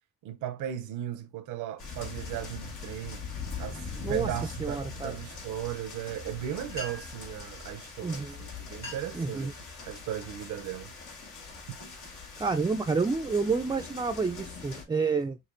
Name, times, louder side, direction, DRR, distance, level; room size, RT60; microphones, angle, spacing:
voice 1, 0.2-3.2 3.6-9.5 9.9-10.9 11.7-11.8, right 11 dB, 90° right, 0.7 m, -37 dB
sound 1, 1.8-14.8, left 4 dB, 80° left, 2.2 m, -42 dB
voice 2, 4.0-4.3 4.6-5.2 8.0-8.4 9.1-9.5 12.4-15.4, right 4 dB, 15° right, 0.4 m, -29 dB
sound 2, 6.7-7.3 8.2-8.3 8.7-9.3 9.7-10.1 10.7-11.0 11.5-12.8, left 1 dB, 60° left, 2.7 m, -44 dB
6.5 x 3.0 x 2.5 m
cardioid pair, 90°, 30 cm